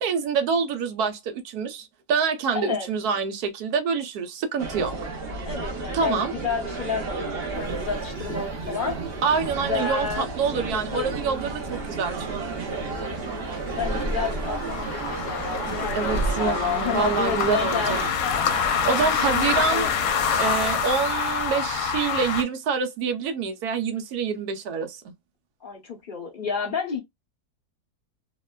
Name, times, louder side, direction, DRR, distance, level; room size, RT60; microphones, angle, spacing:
voice 1, 0.0-4.9 5.9-6.3 9.2-12.6 15.9-18.0 18.5-19.9 20.4-25.1, right 6 dB, 75° right, 1.2 m, -26 dB
voice 2, 2.5-2.9 5.4-9.0 9.6-11.1 13.8-18.4 18.9-20.0 25.6-27.0, left 6 dB, 45° left, 0.7 m, -31 dB
sound 1, 4.6-18.1, right 3 dB, 50° right, 0.8 m, -32 dB
sound 2, 7.5-22.4, left 6 dB, 80° left, 1.1 m, -28 dB
2.9 x 2.1 x 2.2 m
omnidirectional pair, 1.7 m